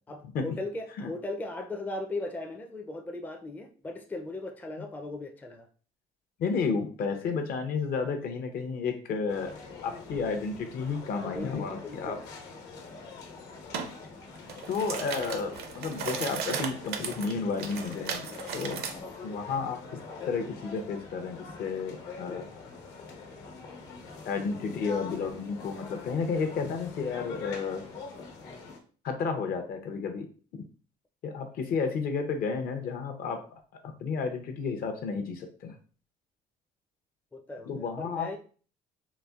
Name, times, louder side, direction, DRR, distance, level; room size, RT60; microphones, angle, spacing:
voice 1, 0.1-5.7 11.2-12.2 18.7-19.0 23.6-24.2 28.4-28.8 37.3-38.4, left 2 dB, 10° left, 4 dB, 0.4 m, -38 dB
voice 2, 6.4-9.5 9.8-12.2 14.7-18.8 19.2-20.0 20.3-22.5 24.3-27.8 29.0-30.3 30.5-30.6 31.2-33.4 33.8-35.8 37.7-38.4, left 5 dB, 60° left, 5 dB, 0.7 m, -32 dB
sound 1, 9.3-28.8, left 4 dB, 75° left, 1.1 m, -44 dB
sound 2, 13.7-13.9 14.4-18.9, right 7 dB, 70° right, 0.5 m, -36 dB
4.1 x 2.5 x 2.3 m, 0.41 s
cardioid pair, 110°, 17 cm